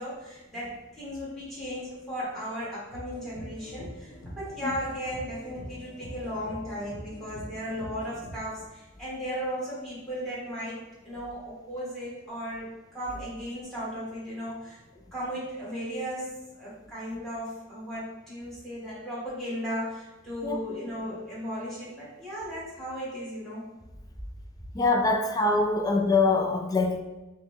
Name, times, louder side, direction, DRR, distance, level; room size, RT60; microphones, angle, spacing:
voice 1, 0.0-14.8 15.1-16.3 16.6-23.6 25.1-25.2 25.6-25.8, equal, ahead, -8 dB, 1.5 m, -36 dB
sound 1, 2.9-8.4, equal, 70° left, 0.8 m, -43 dB
voice 2, 24.7-27.0, left 3 dB, 20° left, 2 dB, 0.3 m, -24 dB
5.2 x 2.1 x 3.6 m, 1.1 s
head